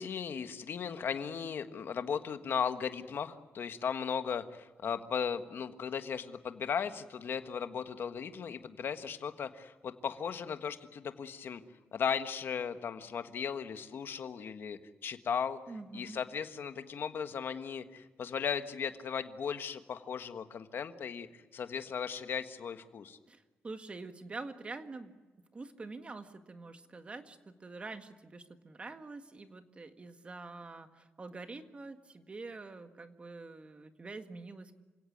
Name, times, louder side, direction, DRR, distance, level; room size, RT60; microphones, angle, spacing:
voice 1, 0.0-11.6 11.9-15.6 15.9-23.2, left 7 dB, 55° left, 9 dB, 1.5 m, -37 dB
voice 2, 15.7-16.2 23.3-25.2 25.5-34.7, right 3 dB, 25° right, 8 dB, 1.7 m, -46 dB
28.0 x 17.0 x 9.3 m, 1.3 s
wide cardioid pair, 150°, 4 cm